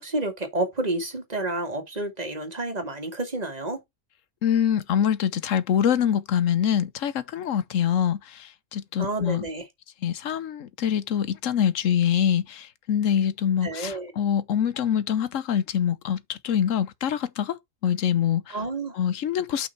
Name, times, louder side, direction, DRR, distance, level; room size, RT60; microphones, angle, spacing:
voice 1, 0.0-3.8 9.0-9.7 13.6-14.1 18.5-19.0, right 2 dB, 30° right, 2.1 m, -30 dB
voice 2, 4.4-9.4 10.0-17.6 17.8-18.6 18.9-19.7, left 9 dB, 80° left, 1.2 m, -25 dB
7.2 x 5.9 x 4.6 m
omnidirectional pair, 1.3 m